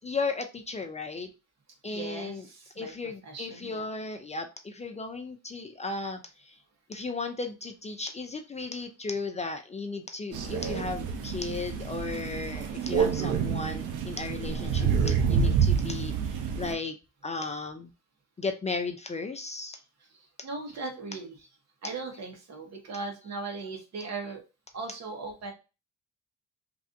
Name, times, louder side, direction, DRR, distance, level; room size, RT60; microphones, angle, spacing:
voice 1, 0.0-1.3 1.8-2.4 2.8-6.2 6.5-6.6 6.9-16.1 16.6-16.9 17.2-17.9 18.4-19.8, left 3 dB, 20° left, 6 dB, 0.5 m, -35 dB
voice 2, 1.8-2.9 3.2-3.8 20.1-21.4 21.8-24.4 24.7-25.5, right 3 dB, 60° right, 2 dB, 1.3 m, -38 dB
Crow, 10.3-16.7, right 6 dB, 85° right, 0.7 m, -28 dB
3.3 x 2.6 x 2.6 m, 0.29 s
cardioid pair, 90°, 30 cm